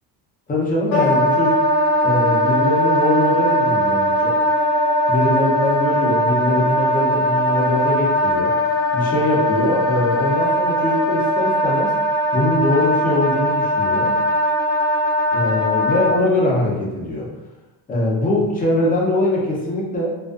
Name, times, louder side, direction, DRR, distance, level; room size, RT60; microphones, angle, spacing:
voice 1, 0.5-1.6 2.0-4.3 5.1-8.6 8.9-12.0 12.3-14.2 15.3-17.3 17.9-20.2, left 1 dB, 20° left, -4 dB, 0.5 m, -22 dB
Wind instrument woodwind instrument, 0.9-16.2, equal, 85° left, 0.7 m, -19 dB
2.5 x 2.2 x 2.3 m, 1.1 s
cardioid pair, 155°, 40 cm